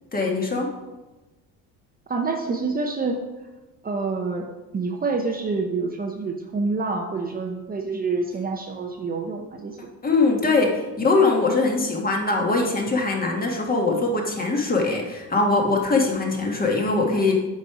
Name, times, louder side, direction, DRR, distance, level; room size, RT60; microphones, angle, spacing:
voice 1, 0.1-0.7 9.8-17.3, left 3 dB, 25° left, 0 dB, 1.8 m, -22 dB
voice 2, 2.1-3.2 3.8-9.9, right 4 dB, 25° right, 3 dB, 0.8 m, -27 dB
8.2 x 5.4 x 4.9 m, 1.1 s
cardioid pair, 110°, 35 cm